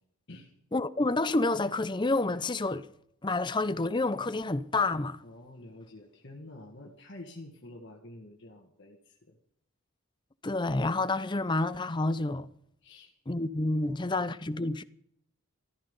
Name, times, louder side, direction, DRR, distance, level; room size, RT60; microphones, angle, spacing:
voice 1, 0.7-2.9 3.2-5.2 10.4-12.5 13.3-14.8, left 2 dB, 20° left, 0.6 m, -29 dB
voice 2, 5.2-9.3 12.8-13.1 13.8-14.1, left 1 dB, 50° left, 1.8 m, -48 dB
14.5 x 14.0 x 5.4 m
head